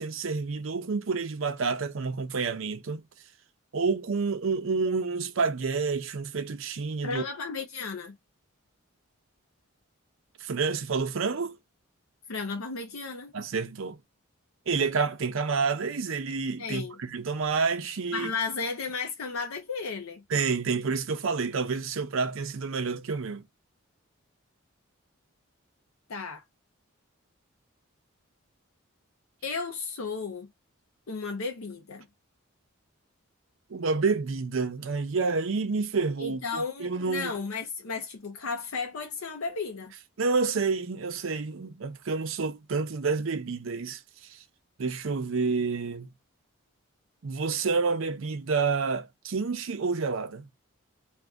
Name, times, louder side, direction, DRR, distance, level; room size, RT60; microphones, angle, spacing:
voice 1, 0.0-3.0 3.7-7.2 10.4-11.6 13.3-14.0 14.7-18.3 20.3-23.4 33.7-37.3 40.2-44.4 44.8-46.1 47.2-50.4, right 4 dB, 70° right, 0.5 m, -29 dB
voice 2, 7.0-8.1 12.3-13.3 16.6-17.0 18.1-20.2 26.1-26.4 29.4-30.5 31.1-32.0 36.2-39.9, left 4 dB, 85° left, 0.7 m, -34 dB
2.5 x 2.5 x 3.4 m
head